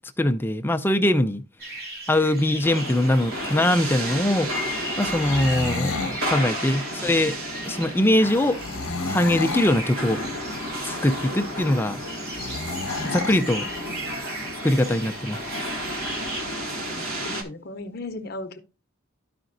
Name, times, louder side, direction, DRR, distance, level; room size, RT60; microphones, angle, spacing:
voice 1, 0.2-1.4 2.1-4.5 5.0-7.3 7.6-8.6 9.1-10.2 10.8-12.0 13.0-13.7 14.6-15.4, left 1 dB, 10° left, 0.4 m, -22 dB
sound 1, 1.6-16.4, right 2 dB, 50° right, 2.5 m, -38 dB
sound 2, 2.6-17.4, equal, 80° right, 1.7 m, -32 dB
sound 3, 5.0-6.2 8.6-9.8 12.3-13.4, left 3 dB, 85° left, 0.8 m, -31 dB
voice 2, 16.6-18.6, left 2 dB, 50° left, 0.7 m, -38 dB
13.0 x 5.0 x 2.6 m
head